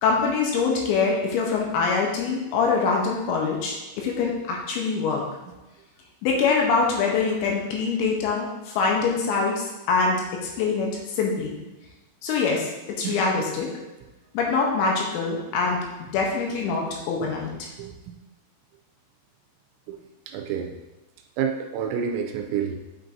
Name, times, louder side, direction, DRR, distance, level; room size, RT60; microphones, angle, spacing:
voice 1, 0.0-5.2 6.2-11.6 12.2-13.7 14.3-15.8 16.1-17.7, left 4 dB, 80° left, -1 dB, 2.8 m, -24 dB
voice 2, 17.8-18.2 19.9-20.0 20.3-20.7 21.4-22.8, right 7 dB, 85° right, 3 dB, 2.8 m, -29 dB
8.4 x 6.2 x 2.6 m, 1.1 s
omnidirectional pair, 5.9 m